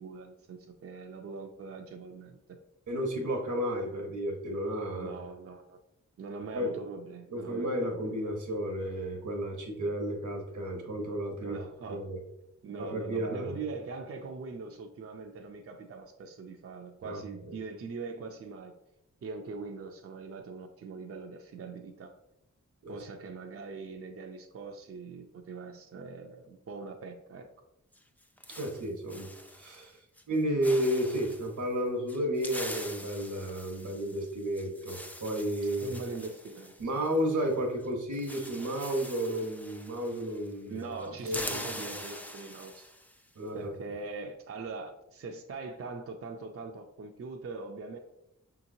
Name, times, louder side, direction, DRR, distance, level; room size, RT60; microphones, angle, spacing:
voice 1, 0.0-2.6 4.9-5.8 6.2-7.7 11.4-12.0 12.6-18.7 19.2-22.1 22.9-27.5 35.8-36.7 40.7-42.9 43.5-48.0, right 4 dB, 50° right, 3 dB, 0.5 m, -42 dB
voice 2, 2.9-5.2 6.5-6.7 7.3-11.6 11.9-12.2 12.8-13.6 17.0-17.2 22.8-23.0 28.5-29.3 29.6-30.0 30.3-35.9 36.8-40.8 41.2-41.6 43.4-43.6, equal, 85° right, 1 dB, 0.9 m, -32 dB
sound 1, 27.9-29.9 30.2-30.4 30.6-31.5 32.1-37.5 37.8-37.9 38.1-40.5 40.8-43.2, left 1 dB, 5° left, 0.4 m, -44 dB
5.5 x 2.9 x 2.6 m, 0.86 s
wide cardioid pair, 60°, 29 cm